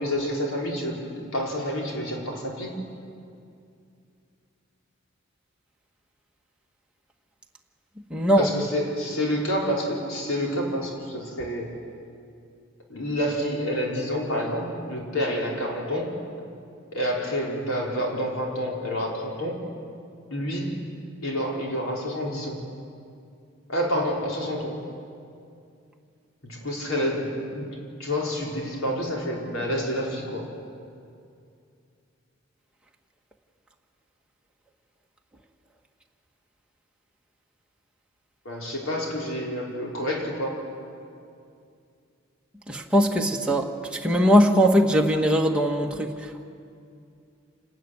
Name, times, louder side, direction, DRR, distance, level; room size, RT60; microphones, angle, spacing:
voice 1, 0.0-2.9 8.4-11.8 12.9-16.1 16.9-19.7 20.3-20.8 21.2-22.6 23.7-24.8 26.4-30.5 38.4-40.6, equal, 85° left, -2 dB, 4.4 m, -28 dB
voice 2, 8.1-8.5 42.7-43.7 44.0-46.1, equal, 5° right, 0 dB, 1.5 m, -20 dB
27.5 x 13.0 x 9.5 m, 2.4 s
head